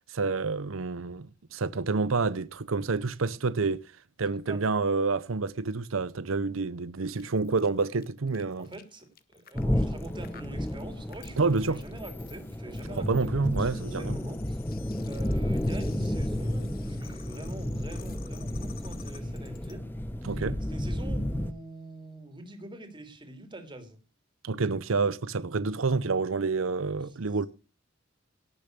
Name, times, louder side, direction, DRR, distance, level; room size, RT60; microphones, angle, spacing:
voice 1, 0.1-3.8 4.2-8.7 11.4-11.8 13.0-14.2 20.2-20.6 24.4-27.5, right 4 dB, 90° right, 0.7 m, -28 dB
sound 1, 7.1-19.7, left 6 dB, 50° left, 1.2 m, -52 dB
voice 2, 8.6-14.6 15.1-19.9 20.2-20.4 20.7-24.0 26.9-27.2, right 1 dB, 25° right, 3.2 m, -45 dB
sound 2, 9.5-21.5, left 1 dB, 10° left, 0.9 m, -32 dB
18.0 x 6.9 x 6.8 m
head